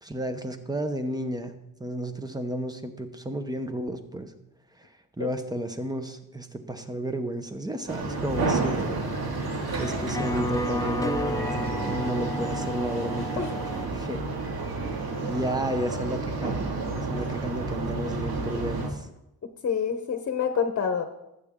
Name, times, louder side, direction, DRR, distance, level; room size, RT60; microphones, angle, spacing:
voice 1, 0.0-4.3 4.8-9.0 9.8-14.2 14.7-19.1, right 1 dB, 10° right, 8 dB, 0.9 m, -33 dB
sound 1, 7.9-18.9, right 3 dB, 70° right, 2.3 m, -30 dB
sound 2, 8.3-13.9, left 1 dB, 10° left, 0.4 m, -33 dB
voice 2, 19.6-21.0, left 6 dB, 40° left, 7 dB, 1.0 m, -27 dB
19.0 x 8.3 x 3.7 m, 0.88 s
wide cardioid pair, 155°, 38 cm